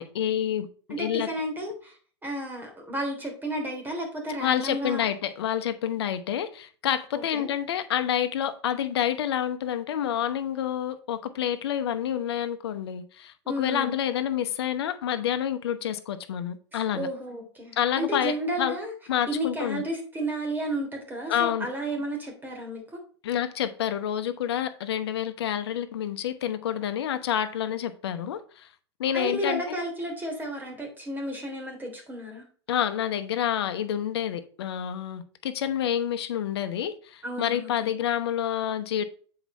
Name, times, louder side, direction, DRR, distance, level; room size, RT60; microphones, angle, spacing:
voice 1, 0.0-1.3 4.4-17.1 17.8-18.7 19.1-19.8 21.3-21.7 23.2-28.7 29.0-29.8 32.7-39.0, left 10 dB, 65° left, 1.0 m, -28 dB
voice 2, 0.9-1.9 2.2-5.1 7.3-7.5 13.4-13.9 16.7-18.9 19.3-23.0 29.1-32.4 37.2-37.9, right 1 dB, 15° right, 3.4 m, -32 dB
8.1 x 4.8 x 4.2 m
hypercardioid pair, 100°, 14 cm